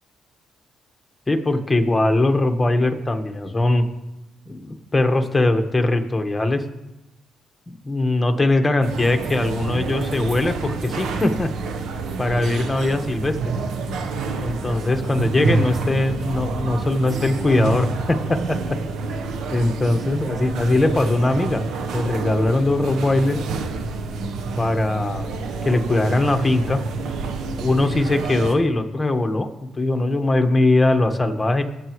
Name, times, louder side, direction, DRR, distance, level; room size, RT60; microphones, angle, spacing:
voice 1, 1.3-3.8 4.5-6.6 7.7-11.5 12.2-13.4 14.4-18.8 19.5-21.6 21.9-23.4 24.6-26.8 27.6-29.5 29.8-31.6, left 2 dB, 20° left, 6 dB, 1.3 m, -21 dB
sound 1, 8.8-28.5, right 4 dB, 80° right, 1.0 m, -28 dB
21.5 x 7.9 x 3.1 m, 0.95 s
cardioid pair, 90°, 0 cm